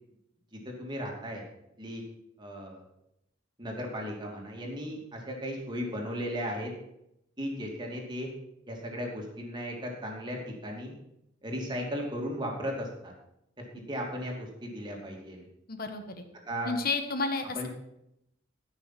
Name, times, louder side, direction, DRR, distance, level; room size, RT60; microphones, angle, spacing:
voice 1, 0.5-1.4 1.8-2.0 2.4-2.8 3.6-6.7 7.4-8.3 8.7-11.0 11.4-13.1 13.6-15.4 16.5-16.7 17.5-17.7, equal, 25° right, 0 dB, 2.8 m, -36 dB
voice 2, 15.7-16.0 16.6-17.7, left 3 dB, 50° left, 7 dB, 1.5 m, -31 dB
14.0 x 6.4 x 6.0 m, 0.80 s
head